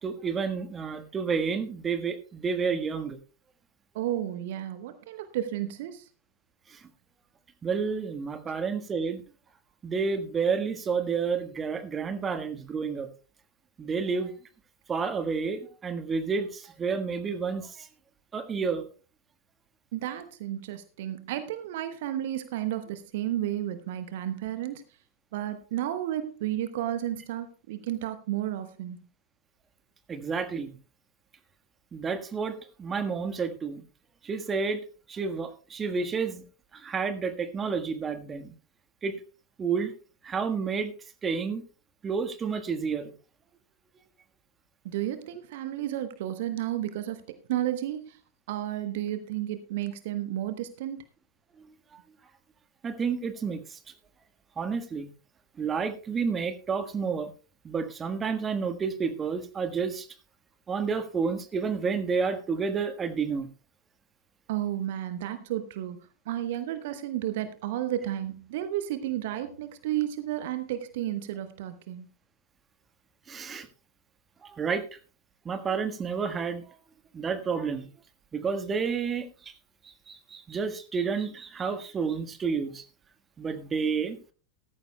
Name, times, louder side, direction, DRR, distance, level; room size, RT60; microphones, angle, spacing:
voice 1, 0.0-3.2 6.7-6.8 7.6-9.2 9.8-13.1 13.8-14.3 14.9-17.9 18.3-18.9 30.1-30.7 31.9-33.8 34.2-34.8 35.1-36.4 36.7-38.5 39.0-39.2 39.6-39.9 40.2-40.9 41.2-41.6 42.0-43.1 51.6-52.0 52.8-53.8 54.6-55.1 55.6-57.3 57.6-60.1 60.7-63.5 73.3-73.7 74.4-74.8 75.4-76.8 77.1-77.9 78.3-79.5 80.1-82.8 83.4-84.2, right 5 dB, 20° right, 9 dB, 1.4 m, -30 dB
voice 2, 3.9-6.1 19.9-24.8 25.3-29.0 44.8-47.2 47.5-48.2 48.5-51.0 64.5-66.0 66.3-72.1, right 12 dB, 55° right, 11 dB, 1.0 m, -32 dB
16.5 x 14.0 x 2.2 m, 0.36 s
figure-of-eight pair, 90°, 0 cm